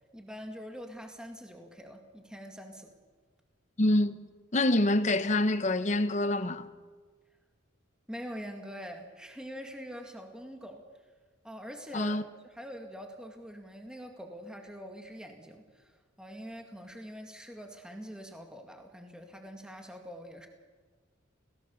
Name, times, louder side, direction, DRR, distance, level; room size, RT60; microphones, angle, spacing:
voice 1, 0.1-2.9 8.1-10.8 11.4-20.5, equal, 5° right, 2.0 m, -44 dB
voice 2, 3.8-6.7 11.9-12.2, left 1 dB, 35° left, 1.0 m, -26 dB
29.5 x 17.5 x 7.1 m
head